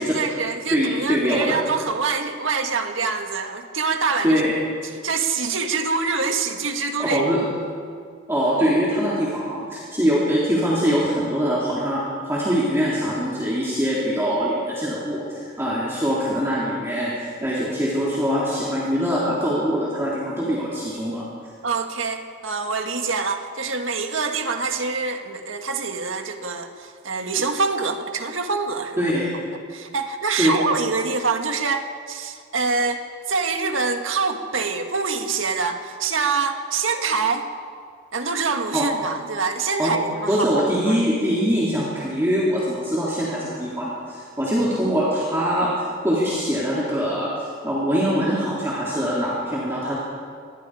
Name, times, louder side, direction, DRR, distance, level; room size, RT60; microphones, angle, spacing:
voice 1, 0.0-4.4 4.8-7.3 21.6-29.0 29.7-37.5 38.1-40.4 40.9-41.0, right 4 dB, 80° right, 5 dB, 1.8 m, -25 dB
voice 2, 0.7-1.6 4.2-4.5 7.0-7.4 8.3-21.2 29.0-29.3 30.4-30.5 38.7-38.8 39.8-39.9 40.3-45.7 46.0-50.0, equal, 10° right, -7 dB, 3.5 m, -23 dB
26.5 x 21.5 x 5.0 m, 2.1 s
head